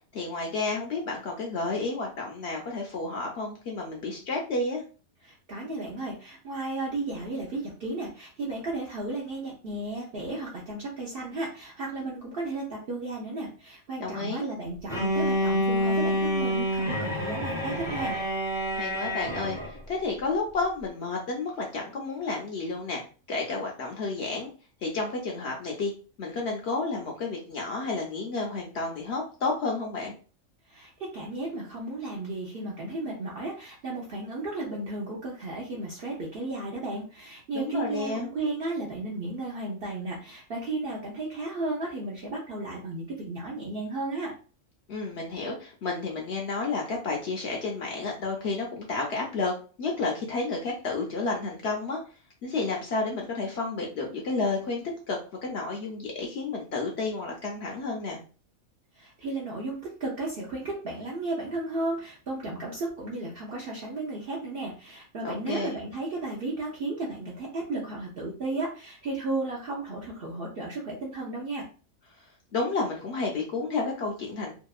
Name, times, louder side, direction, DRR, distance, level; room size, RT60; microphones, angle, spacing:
voice 1, 0.1-4.8 14.0-14.5 18.7-23.0 23.3-24.5 24.8-25.9 26.2-30.1 37.5-38.3 44.9-52.0 52.4-58.2 65.2-65.8 72.5-74.5, left 3 dB, 65° left, 0 dB, 0.7 m, -31 dB
voice 2, 5.2-18.2 30.7-44.3 59.0-71.6, right 2 dB, 60° right, -3 dB, 0.6 m, -34 dB
Bowed string instrument, 14.9-19.8, equal, 5° right, 0.7 m, -28 dB
2.8 x 2.3 x 2.3 m, 0.36 s
omnidirectional pair, 1.5 m